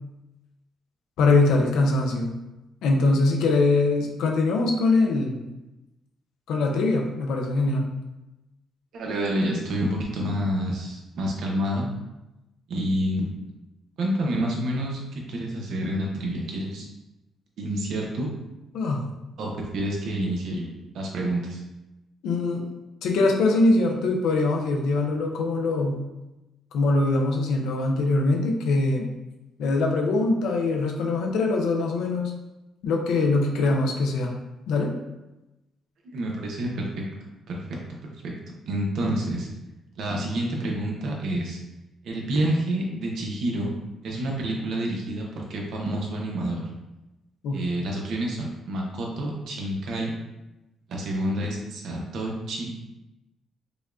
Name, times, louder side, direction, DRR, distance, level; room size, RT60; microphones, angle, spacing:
voice 1, 1.2-2.3 2.8-5.5 6.5-7.9 18.7-19.1 22.2-22.7 23.0-26.0 26.7-29.1 29.6-32.3 32.8-34.3 34.7-34.9 47.4-47.6, left 3 dB, 85° left, 1 dB, 0.6 m, -22 dB
voice 2, 8.9-11.9 12.7-13.3 14.0-16.8 17.6-18.3 19.4-20.7 20.9-21.6 36.0-37.0 37.5-38.3 38.7-39.5 40.0-41.6 42.0-43.7 44.0-46.6 47.5-50.1 50.9-52.7, right 1 dB, 75° right, -1 dB, 0.8 m, -28 dB
5.1 x 2.3 x 2.5 m, 0.99 s
cardioid pair, 90°, 0 cm